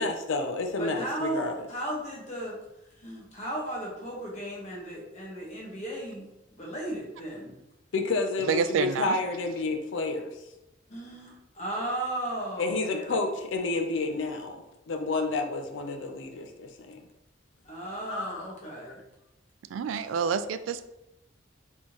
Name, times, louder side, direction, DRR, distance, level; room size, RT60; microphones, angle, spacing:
voice 1, 0.0-1.6 7.9-10.4 12.6-14.6 14.9-17.0 18.0-18.5, left 3 dB, 75° left, 5 dB, 0.5 m, -30 dB
voice 2, 0.8-2.6 3.0-7.6 10.9-13.2 17.6-19.1, right 1 dB, 35° left, -3 dB, 1.2 m, -35 dB
voice 3, 8.5-9.2 19.7-20.9, right 6 dB, 85° right, 12 dB, 0.3 m, -28 dB
4.3 x 3.5 x 3.0 m, 0.90 s
head